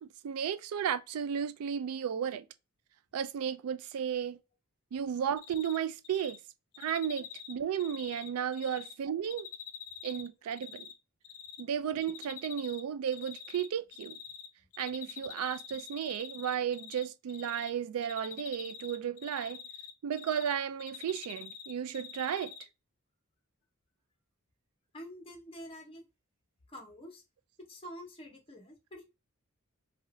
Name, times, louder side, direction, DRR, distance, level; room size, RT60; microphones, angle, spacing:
voice 1, 0.0-2.5 3.1-4.4 4.9-6.4 6.8-9.5 10.0-10.9 11.6-14.2 14.8-19.6 20.0-22.6, right 8 dB, 80° right, 0.3 m, -34 dB
Cricket, 5.4-5.8 6.0-6.4 6.7-8.9 9.2-10.9 11.2-11.6 12.0-12.8 13.1-14.5 14.7-17.0 17.3-17.7 18.0-20.5 20.8-22.6, left 9 dB, 75° left, 0.5 m, -45 dB
voice 2, 24.9-26.0 26.7-27.2 27.7-29.0, equal, 25° left, 0.9 m, -47 dB
2.9 x 2.6 x 2.9 m
head